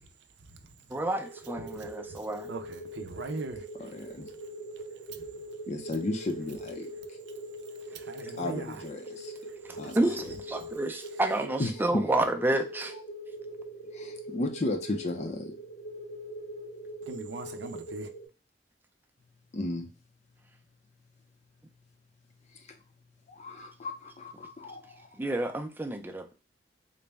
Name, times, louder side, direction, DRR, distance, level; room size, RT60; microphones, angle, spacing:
voice 1, 0.9-2.5 9.9-12.9 25.2-26.3, right 1 dB, 10° right, 0.5 m, -29 dB
sound 1, 1.0-18.3, right 1 dB, 60° left, 1.2 m, -42 dB
voice 2, 2.5-3.6 7.9-8.8 9.7-9.9 17.1-18.1, right 3 dB, 70° right, 0.5 m, -40 dB
voice 3, 3.8-4.3 5.7-6.9 8.4-9.3 9.8-10.3 11.6-12.1 13.9-15.5 19.5-19.9 23.3-25.0, left 2 dB, 40° left, 0.6 m, -34 dB
3.9 x 2.1 x 3.4 m
head